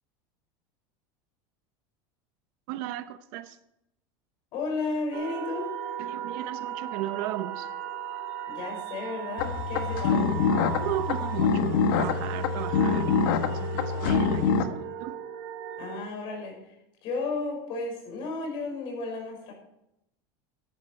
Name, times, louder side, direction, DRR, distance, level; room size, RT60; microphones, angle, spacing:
voice 1, 2.7-3.6 6.0-7.7 10.8-13.1 13.5-15.2, right 14 dB, 55° right, 13 dB, 0.8 m, -36 dB
voice 2, 4.5-5.7 8.5-10.3 15.8-16.6 17.0-19.5, left 3 dB, 45° left, 1 dB, 5.9 m, -33 dB
sound 1, 5.1-16.0, right 9 dB, 75° right, 2.6 m, -36 dB
sound 2, 9.4-14.6, left 5 dB, 70° left, 1.3 m, -25 dB
14.0 x 11.5 x 4.7 m, 0.82 s
supercardioid pair, 165°, 12 cm